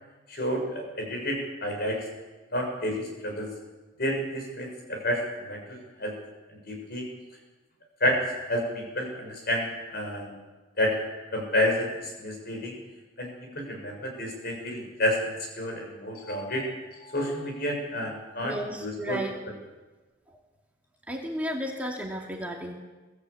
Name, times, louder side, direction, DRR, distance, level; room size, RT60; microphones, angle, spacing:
voice 1, 0.3-2.0 2.5-3.5 4.0-6.1 6.5-7.1 8.0-8.2 8.5-10.4 10.8-10.9 11.3-12.8 13.2-16.7 17.0-18.5 18.8-19.2, left 1 dB, 55° left, 2 dB, 6.8 m, -30 dB
voice 2, 18.4-19.4 21.1-22.7, equal, 10° right, -1 dB, 2.3 m, -33 dB
23.0 x 15.5 x 8.5 m, 1.2 s
head